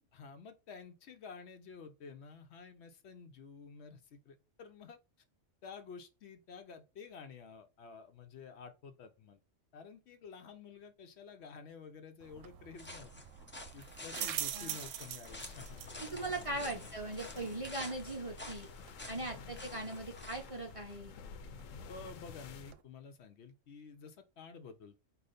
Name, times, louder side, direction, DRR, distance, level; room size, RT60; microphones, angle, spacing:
voice 1, 0.1-5.0 5.6-9.4 9.7-13.1 13.7-16.8 19.2-19.4 21.9-25.0, left 5 dB, 65° left, 0.8 m, -51 dB
sound 1, 12.2-22.8, right 11 dB, 80° right, 0.9 m, -47 dB
sound 2, 12.8-20.5, left 1 dB, 15° left, 0.5 m, -50 dB
voice 2, 14.2-14.8 16.0-18.7 19.1-21.1, right 2 dB, 35° right, 0.6 m, -40 dB
sound 3, 15.2-22.7, left 6 dB, 90° left, 1.0 m, -51 dB
5.0 x 2.4 x 4.0 m
omnidirectional pair, 1.3 m